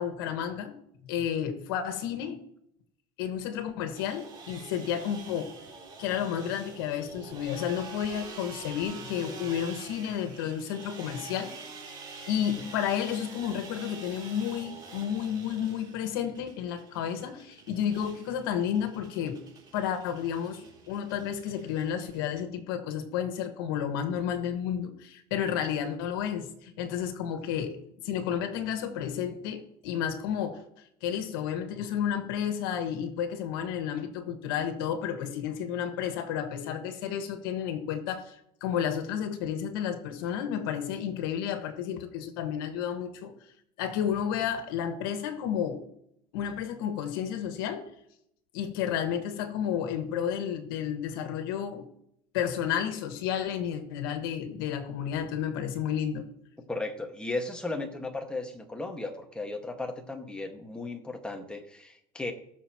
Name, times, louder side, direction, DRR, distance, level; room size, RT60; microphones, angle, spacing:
voice 1, 0.0-2.4 3.2-5.6 6.0-11.6 12.3-19.4 19.7-27.8 28.0-30.6 31.0-43.3 43.8-45.8 46.3-47.9 48.5-51.9 52.3-56.3, left 9 dB, 85° left, 7 dB, 1.7 m, -31 dB
sound 1, 3.9-22.4, right 5 dB, 35° right, 3.2 m, -46 dB
voice 2, 56.7-62.3, left 2 dB, 10° left, 3 dB, 1.8 m, -35 dB
19.5 x 6.9 x 3.1 m, 0.75 s
supercardioid pair, 120°, 12 cm